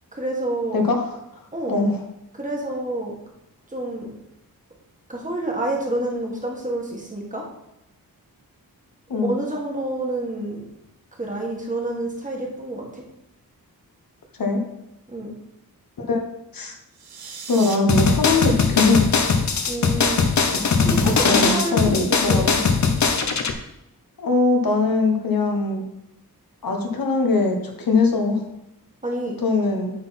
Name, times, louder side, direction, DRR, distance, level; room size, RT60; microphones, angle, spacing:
voice 1, 0.1-0.8 1.5-1.8 2.3-3.1 3.7-4.1 5.1-7.4 9.2-10.6 11.2-13.0 15.1-15.3 19.7-20.3 20.8-22.5 29.0-29.3, right 1 dB, 20° right, -2 dB, 1.6 m, -28 dB
voice 2, 0.7-1.1 1.7-1.9 9.1-9.4 14.4-14.6 16.0-16.2 16.5-16.7 17.5-19.0 21.2-22.6 24.2-25.8 26.6-28.4 29.4-29.9, left 3 dB, 70° left, 3 dB, 1.2 m, -21 dB
sound 1, 16.9-17.8, right 5 dB, 90° right, 0.9 m, -36 dB
sound 2, 17.9-23.5, left 5 dB, 50° left, 0.7 m, -20 dB
9.4 x 4.0 x 4.2 m, 0.86 s
wide cardioid pair, 115°, 36 cm